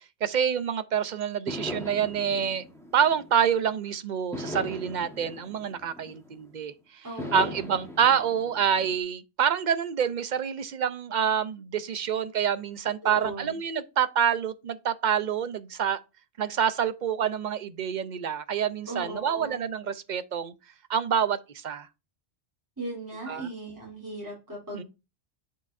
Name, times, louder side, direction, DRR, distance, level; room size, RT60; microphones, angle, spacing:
voice 1, 0.2-2.6 2.9-6.7 7.3-16.0 16.4-20.5 20.9-21.9 23.3-23.5 24.7-24.8, right 8 dB, 50° right, 0.7 m, -27 dB
sound 1, 1.5-3.7 4.3-6.6 7.2-9.0, left 1 dB, 5° left, 1.3 m, -39 dB
voice 2, 7.0-7.7 13.0-13.6 18.9-19.6 22.8-24.8, right 2 dB, 15° right, 3.2 m, -38 dB
9.0 x 5.7 x 2.6 m
omnidirectional pair, 1.1 m